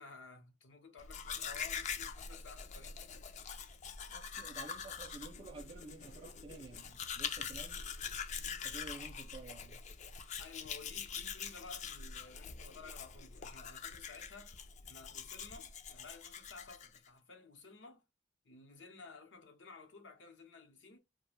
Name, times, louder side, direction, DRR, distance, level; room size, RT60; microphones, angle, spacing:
voice 1, 0.0-3.0 10.4-14.6 14.9-18.0 18.4-21.0, left 4 dB, 80° left, 0.8 m, -54 dB
Domestic sounds home sounds, 1.0-17.1, left 6 dB, 40° left, 0.3 m, -44 dB
voice 2, 4.1-7.8 8.6-9.8, right 3 dB, 30° right, 0.4 m, -51 dB
2.4 x 2.2 x 3.1 m
head